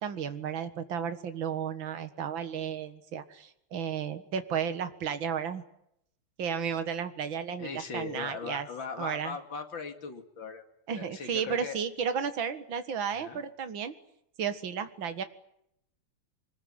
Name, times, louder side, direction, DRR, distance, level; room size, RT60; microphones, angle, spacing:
voice 1, 0.0-5.6 6.4-8.7 9.0-9.4 10.9-13.9 14.4-15.2, right 7 dB, 70° right, 9 dB, 2.4 m, -33 dB
voice 2, 7.6-10.6 10.9-11.8 13.1-13.4, left 5 dB, 65° left, 6 dB, 3.1 m, -39 dB
25.0 x 20.5 x 9.6 m, 0.77 s
omnidirectional pair, 2.3 m